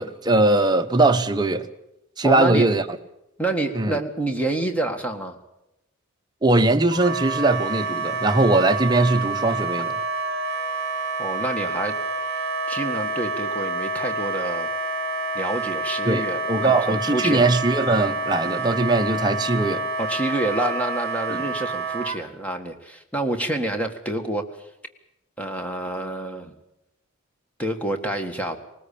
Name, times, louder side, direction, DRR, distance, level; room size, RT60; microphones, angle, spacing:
voice 1, 0.0-1.7 2.2-2.8 3.7-4.0 6.4-9.9 16.0-19.9, right 2 dB, 20° right, 0.9 m, -20 dB
voice 2, 2.2-2.7 3.4-5.4 11.2-11.9 12.3-14.7 15.3-17.4 20.0-24.5 25.4-26.5 27.6-28.6, right 2 dB, 5° left, 1.7 m, -27 dB
Wind instrument woodwind instrument, 6.9-22.2, right 3 dB, 50° right, 1.8 m, -28 dB
20.0 x 19.5 x 8.6 m
head